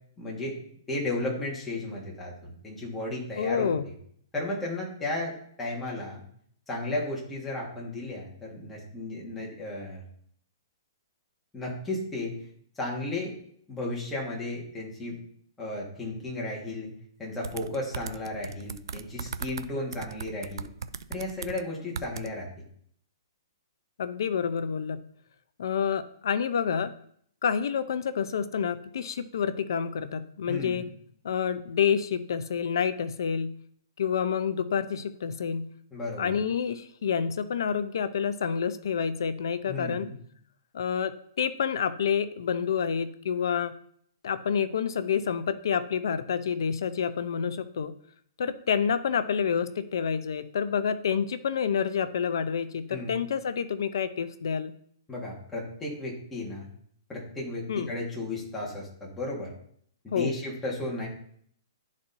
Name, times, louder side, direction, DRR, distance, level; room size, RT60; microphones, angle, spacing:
voice 1, 0.2-0.6 0.9-3.9 4.3-6.2 6.7-10.0 11.5-12.3 12.7-13.3 13.7-15.2 15.6-16.9 17.2-20.7 21.1-22.5 30.4-30.9 35.9-36.4 39.7-40.2 52.9-53.2 55.1-56.7 57.1-59.5 60.0-61.1, left 2 dB, 5° left, -4 dB, 1.5 m, -34 dB
voice 2, 3.4-3.9 24.0-25.0 25.6-26.9 27.4-30.9 31.2-33.6 34.0-35.7 36.2-40.1 40.7-43.7 44.2-47.9 48.4-54.7 57.7-57.9 60.1-60.4, left 7 dB, 65° left, 12 dB, 0.5 m, -28 dB
sound 1, 17.4-19.7 19.9-21.6 21.9-22.3, right 6 dB, 75° right, 0.4 m, -37 dB
11.0 x 4.1 x 2.6 m, 0.64 s
hypercardioid pair, 165°, 2 cm